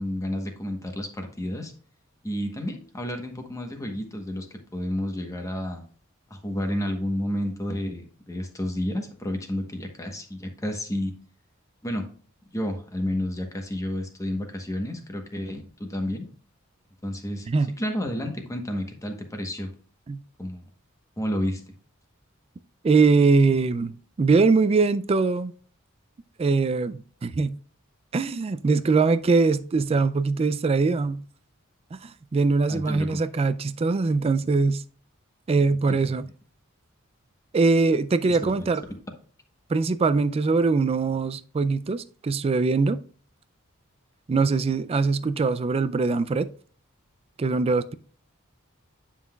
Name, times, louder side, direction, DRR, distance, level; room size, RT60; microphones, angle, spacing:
voice 1, 0.0-1.7 2.2-4.5 4.7-5.8 6.3-11.1 11.8-12.1 12.5-16.3 17.0-17.5 17.8-19.7 20.4-20.6 21.2-21.6 32.7-33.2 35.9-36.2 38.2-38.7, left 1 dB, 15° left, 1.1 m, -31 dB
voice 2, 22.8-25.5 26.4-27.6 28.1-31.2 32.0-34.8 35.5-36.2 37.5-38.8 39.7-43.0 44.3-46.5 47.4-48.0, right 4 dB, 30° right, 0.3 m, -22 dB
9.4 x 5.7 x 2.3 m
head